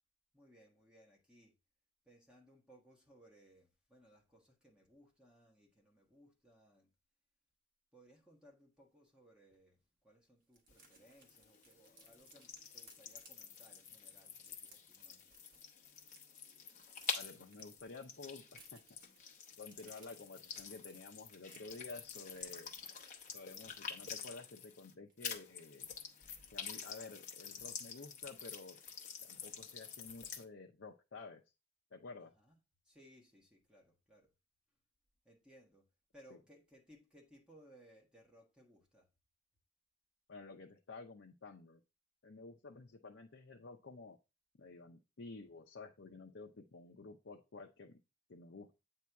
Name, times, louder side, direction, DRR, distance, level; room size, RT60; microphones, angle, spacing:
voice 1, 0.3-1.6 2.0-6.9 7.9-15.3 32.2-32.5 32.8-34.3 35.2-35.9 36.1-39.1, equal, 5° right, 1.4 m, -64 dB
sound 1, 9.5-9.6 9.9-10.0 10.2-16.2 16.5-24.7 25.1-25.2 25.5-25.7, right 3 dB, 50° right, 1.7 m, -66 dB
sound 2, 10.7-24.9 25.2-30.4, left 7 dB, 40° left, 0.9 m, -48 dB
voice 2, 17.1-19.0 19.6-22.7 23.3-25.9 26.5-28.8 29.2-31.4 31.9-32.3 36.3-36.4 40.3-41.8 42.2-44.2 44.6-48.0 48.3-48.7, left 3 dB, 70° left, 0.7 m, -52 dB
8.4 x 2.8 x 4.6 m
head